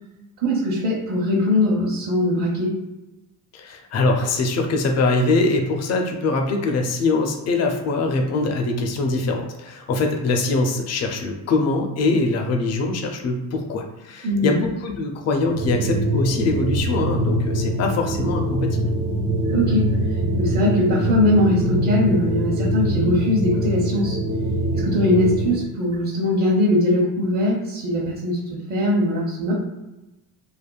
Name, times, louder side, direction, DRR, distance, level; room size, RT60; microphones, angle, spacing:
voice 1, 0.4-2.7 14.2-14.5 19.5-19.9 20.4-24.2 24.7-28.4 28.7-29.5, left 1 dB, 45° right, -4 dB, 0.9 m, -21 dB
voice 2, 3.5-18.9, left 3 dB, 40° left, 3 dB, 0.6 m, -23 dB
sound 1, 15.4-25.6, equal, 70° right, 1.2 m, -23 dB
3.4 x 2.1 x 2.3 m, 1.0 s
supercardioid pair, 95°, 42 cm